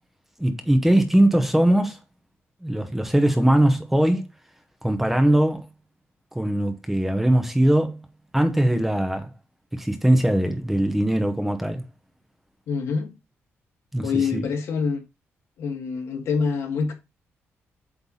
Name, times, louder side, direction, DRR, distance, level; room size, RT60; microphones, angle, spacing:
voice 1, 0.4-2.0 2.6-4.2 4.8-5.7 6.3-8.0 8.3-9.3 9.7-11.8 13.9-14.4, right 1 dB, 5° right, 1.0 m, -21 dB
voice 2, 12.7-13.1 14.0-15.0 15.6-16.9, left 5 dB, 75° left, 2.1 m, -25 dB
8.0 x 3.4 x 5.5 m
cardioid pair, 155°, 5 cm